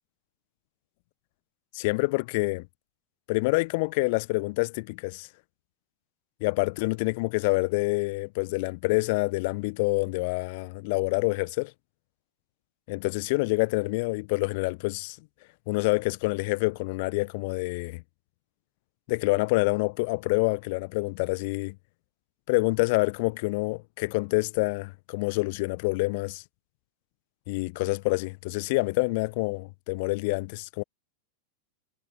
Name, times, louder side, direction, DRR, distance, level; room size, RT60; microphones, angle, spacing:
voice 1, 1.7-2.7 3.3-5.3 6.4-11.7 12.9-15.2 15.7-18.0 19.1-21.7 22.5-26.4 27.5-30.8, left 26 dB, 50° left, 1.2 m, -27 dB
figure-of-eight pair, 90°, 0 cm